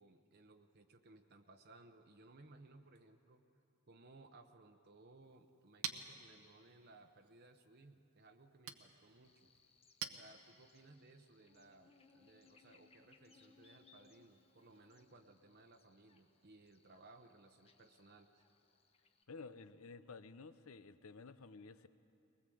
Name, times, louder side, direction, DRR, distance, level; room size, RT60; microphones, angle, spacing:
voice 1, 0.0-3.4 3.9-9.5 10.1-18.5, right 2 dB, 50° right, 5 dB, 0.8 m, -62 dB
Chink clink, 5.2-10.9, right 8 dB, 80° right, 1.1 m, -51 dB
Buzz, 9.2-19.2, left 4 dB, 30° left, 1.2 m, -70 dB
voice 2, 19.3-21.9, left 4 dB, 85° left, 13 dB, 0.7 m, -53 dB
22.0 x 20.0 x 7.8 m, 2.7 s
head